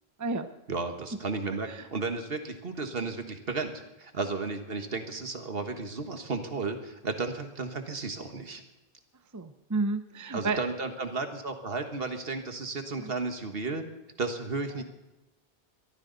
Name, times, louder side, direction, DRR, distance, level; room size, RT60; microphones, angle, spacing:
voice 1, 0.7-8.6 10.3-13.8 14.2-14.8, right 3 dB, 70° right, 6 dB, 1.7 m, -33 dB
voice 2, 9.3-10.6 13.0-13.1, right 3 dB, 20° right, 9 dB, 0.7 m, -31 dB
22.0 x 14.5 x 4.0 m, 0.98 s
omnidirectional pair, 1.0 m